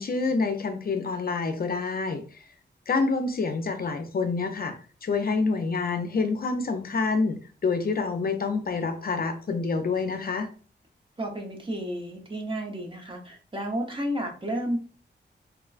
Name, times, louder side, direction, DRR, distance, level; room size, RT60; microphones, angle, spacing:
voice 1, 0.0-2.4 2.9-4.7 5.0-10.5, left 4 dB, 50° left, 6 dB, 0.5 m, -27 dB
voice 2, 11.2-14.8, equal, 25° right, 1 dB, 0.7 m, -32 dB
3.6 x 2.2 x 2.4 m, 0.38 s
wide cardioid pair, 95°, 19 cm